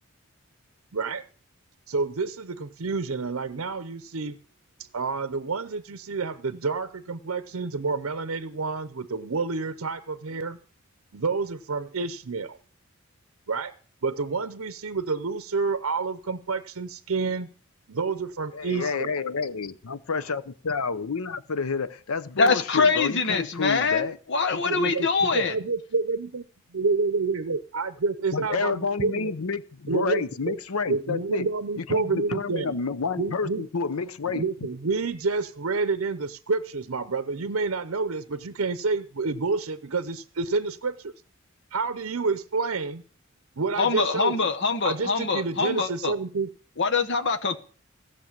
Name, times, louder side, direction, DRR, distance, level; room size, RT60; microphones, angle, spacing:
voice 1, 0.9-1.2 1.9-4.4 4.8-10.6 11.1-12.6 13.5-13.7 14.0-17.5 17.9-19.1 24.7-26.4 26.7-29.3 29.9-30.6 30.9-32.7 33.2-33.7 34.3-41.1 41.7-43.0 43.6-44.4 44.8-46.5, right 4 dB, 70° right, 0.7 m, -29 dB
voice 2, 18.5-24.2 24.5-25.5 28.3-31.5 31.8-34.4, left 4 dB, 90° left, 0.7 m, -30 dB
voice 3, 22.4-25.5 43.8-46.1 46.8-47.6, left 4 dB, 55° left, 1.1 m, -24 dB
16.0 x 6.6 x 7.4 m
head